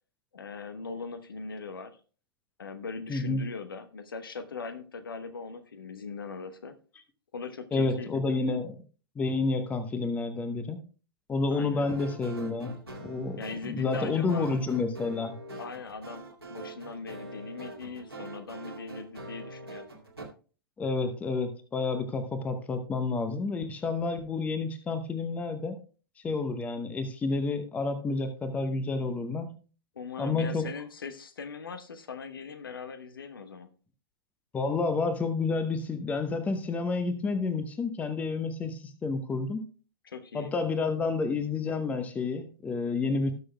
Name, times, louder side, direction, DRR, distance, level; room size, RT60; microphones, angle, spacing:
voice 1, 0.3-2.0 2.6-6.7 7.3-8.2 11.5-11.9 13.4-14.5 15.6-19.8 29.9-33.7 40.0-40.5, left 5 dB, 65° left, 10 dB, 1.0 m, -40 dB
voice 2, 3.1-3.4 7.7-8.8 9.2-10.8 11.3-12.8 13.0-13.4 13.6-15.4 20.8-25.8 26.2-29.6 30.2-30.7 34.5-39.7 40.3-43.3, left 3 dB, 10° left, 10 dB, 0.8 m, -30 dB
sound 1, 11.9-20.2, right 2 dB, 85° right, 2.2 m, -44 dB
18.5 x 6.3 x 2.2 m, 0.37 s
figure-of-eight pair, 110°, 12 cm